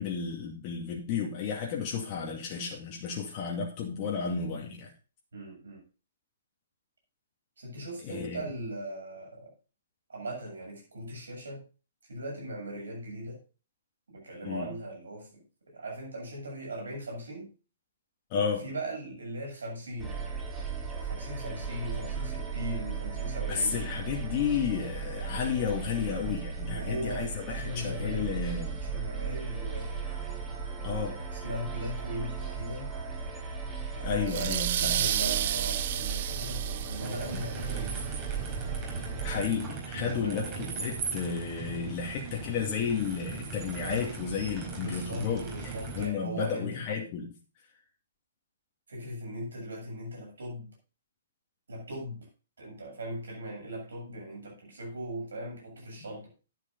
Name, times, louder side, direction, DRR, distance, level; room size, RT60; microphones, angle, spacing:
voice 1, 0.0-4.9 8.0-8.4 14.4-14.7 18.3-18.6 23.5-28.8 30.8-31.2 34.0-35.0 39.2-47.4, left 6 dB, 35° left, -1 dB, 2.3 m, -32 dB
voice 2, 5.3-5.8 7.6-9.5 10.1-11.6 12.0-13.4 14.1-17.5 18.3-20.2 21.0-23.8 26.6-28.4 28.9-30.0 31.3-32.9 33.9-38.1 39.9-40.5 44.8-46.8 48.9-50.7 51.7-52.3 52.6-56.3, equal, 70° right, 0 dB, 7.3 m, -39 dB
sound 1, 20.0-39.4, right 5 dB, 15° right, 3.7 m, -36 dB
sound 2, 34.3-37.7, right 11 dB, 45° right, 0.7 m, -31 dB
sound 3, 37.0-46.1, right 5 dB, 30° right, 4.6 m, -39 dB
10.5 x 9.2 x 4.0 m, 0.34 s
figure-of-eight pair, 125°, 0 cm